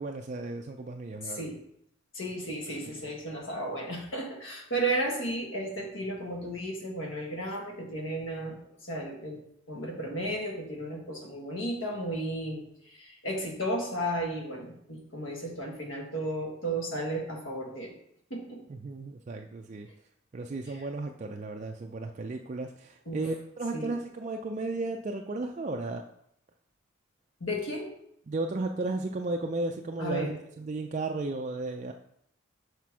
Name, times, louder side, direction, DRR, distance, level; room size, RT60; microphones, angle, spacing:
voice 1, 0.0-1.5 18.7-19.9 20.3-26.0 28.3-31.9, right 2 dB, 35° right, 3 dB, 0.3 m, -34 dB
voice 2, 1.2-1.6 2.1-9.4 9.7-18.0 18.3-18.6 20.7-20.9 23.0-23.2 23.7-23.9 27.4-27.9 30.0-30.4, right 1 dB, 70° left, 1 dB, 1.6 m, -34 dB
5.9 x 5.0 x 4.7 m, 0.73 s
head